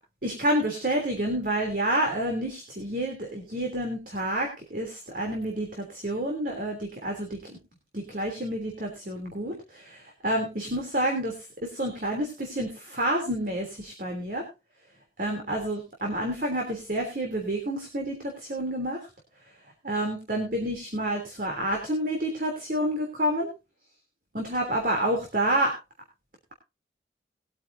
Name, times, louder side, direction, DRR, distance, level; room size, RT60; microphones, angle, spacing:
voice 1, 0.2-7.6 7.9-14.4 15.2-19.1 19.8-23.5 24.3-25.7, right 1 dB, 50° right, 2 dB, 3.2 m, -29 dB
20.5 x 8.8 x 2.7 m, 0.27 s
head